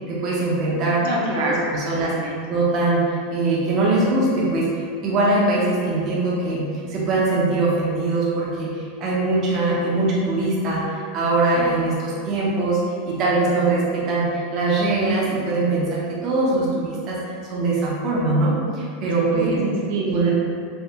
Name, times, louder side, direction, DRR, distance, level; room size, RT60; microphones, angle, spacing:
voice 1, 0.0-2.1 2.5-4.7 5.0-12.8 13.1-19.6 20.1-20.3, right 2 dB, 30° right, -5 dB, 0.4 m, -22 dB
voice 2, 1.0-2.4 19.3-20.3, right 2 dB, 75° right, -3 dB, 0.6 m, -27 dB
3.3 x 2.1 x 2.7 m, 2.2 s
supercardioid pair, 170°, 0 cm